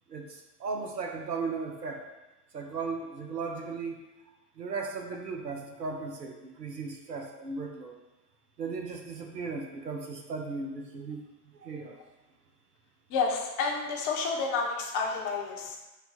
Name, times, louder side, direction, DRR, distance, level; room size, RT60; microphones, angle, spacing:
voice 1, 0.1-2.0 2.5-4.0 4.6-8.0 8.6-11.2 11.5-12.0, right 4 dB, 90° right, 2 dB, 0.6 m, -36 dB
voice 2, 13.1-15.8, left 4 dB, 40° left, 0 dB, 0.9 m, -30 dB
6.5 x 2.3 x 2.8 m, 1.1 s
figure-of-eight pair, 70°, 47 cm